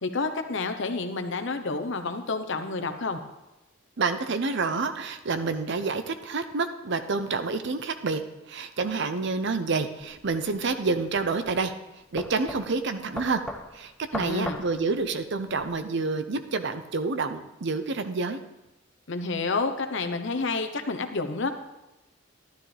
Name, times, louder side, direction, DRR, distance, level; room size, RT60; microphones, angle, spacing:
voice 1, 0.0-3.2 14.1-14.6 19.1-21.5, left 3 dB, 65° left, 7 dB, 0.9 m, -29 dB
voice 2, 4.0-8.2 8.5-11.7 12.1-13.4 13.7-18.4, right 4 dB, 60° right, 9 dB, 0.7 m, -28 dB
sound 1, 10.1-15.7, left 1 dB, 5° left, 0.8 m, -40 dB
12.5 x 12.0 x 3.4 m, 0.99 s
head